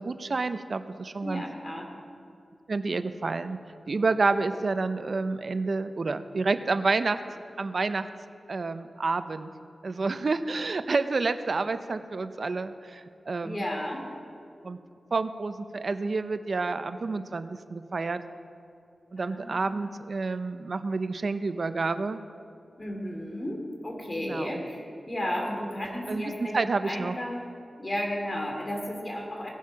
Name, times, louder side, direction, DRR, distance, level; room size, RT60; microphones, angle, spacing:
voice 1, 0.0-1.4 2.7-3.6 3.9-7.2 7.6-8.1 8.5-9.5 9.8-13.7 14.6-14.8 15.1-18.2 19.1-22.2 24.1-24.7 26.1-27.1, right 3 dB, 65° right, 11 dB, 0.6 m, -29 dB
voice 2, 1.2-1.9 13.4-14.1 19.2-19.7 22.8-26.6 26.8-27.4 27.8-29.5, left 1 dB, 35° left, 0 dB, 2.9 m, -33 dB
17.0 x 7.3 x 5.8 m, 2.5 s
cardioid pair, 45°, 0 cm